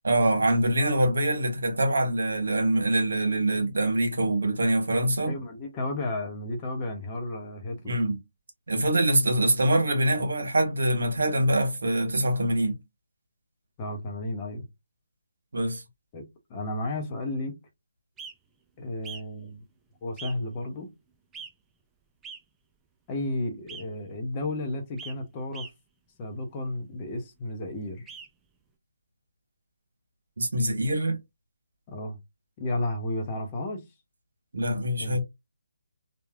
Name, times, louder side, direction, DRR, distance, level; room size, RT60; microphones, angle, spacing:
voice 1, 0.0-5.3 7.8-8.2 8.7-12.8 15.5-15.8 30.4-31.2 34.5-35.2, right 1 dB, 70° right, 1.3 m, -24 dB
voice 2, 5.3-8.0 13.8-14.7 16.1-17.6 18.8-19.6 20.0-20.9 23.1-25.7 26.2-28.1 31.9-32.2 32.6-33.8 35.0-35.2, left 1 dB, 25° left, 0.7 m, -33 dB
sound 1, 18.2-18.3 19.0-19.2 20.2-20.3 21.3-21.5 22.2-22.4 23.7-23.8 25.0-25.1 25.5-25.7 28.1-28.3, right 5 dB, 10° right, 0.4 m, -41 dB
3.1 x 2.4 x 2.3 m
figure-of-eight pair, 155°, 0 cm